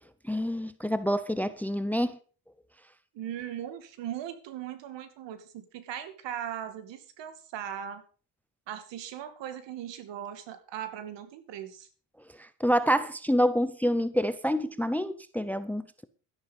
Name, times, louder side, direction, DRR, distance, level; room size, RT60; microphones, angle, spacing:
voice 1, 0.3-2.2 12.4-16.1, equal, 5° left, 0.7 m, -27 dB
voice 2, 3.1-8.0 8.7-11.9, right 10 dB, 70° right, 2.3 m, -39 dB
12.5 x 10.5 x 5.3 m
cardioid pair, 110°, 46 cm